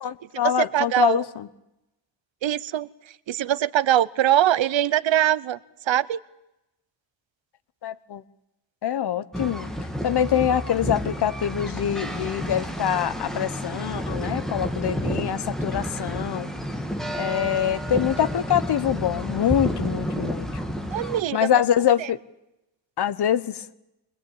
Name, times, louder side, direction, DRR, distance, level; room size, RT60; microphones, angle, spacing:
voice 1, 0.0-1.5 7.8-8.2 8.8-9.7 10.0-16.5 17.1-20.6 21.3-22.2 23.0-23.7, left 10 dB, 60° left, 14 dB, 1.0 m, -24 dB
voice 2, 0.7-1.2 2.4-2.9 3.3-5.6 5.9-6.2 20.9-21.5, right 12 dB, 80° right, 18 dB, 0.9 m, -22 dB
sound 1, 9.3-21.2, equal, ahead, 1.9 m, -30 dB
23.0 x 20.5 x 8.8 m, 0.91 s
wide cardioid pair, 180°, 44 cm